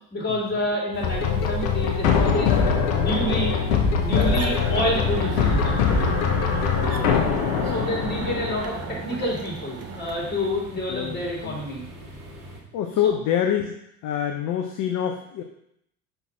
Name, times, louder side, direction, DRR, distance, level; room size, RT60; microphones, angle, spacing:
voice 1, 0.1-3.5 3.9-6.0 7.6-11.9 13.0-13.1, left 1 dB, 20° left, -2 dB, 2.8 m, -28 dB
sound 1, 0.9-12.6, equal, 70° right, 2.4 m, -42 dB
sound 2, 1.0-8.6, left 5 dB, 60° left, 1.2 m, -22 dB
sound 3, 4.1-10.6, right 6 dB, 30° right, 0.8 m, -35 dB
voice 2, 6.7-7.3 7.5-7.8 10.9-11.6 12.7-13.8 14.0-15.4, left 9 dB, 40° left, 4 dB, 0.8 m, -26 dB
5.7 x 5.4 x 4.3 m, 0.75 s
figure-of-eight pair, 65°, 46 cm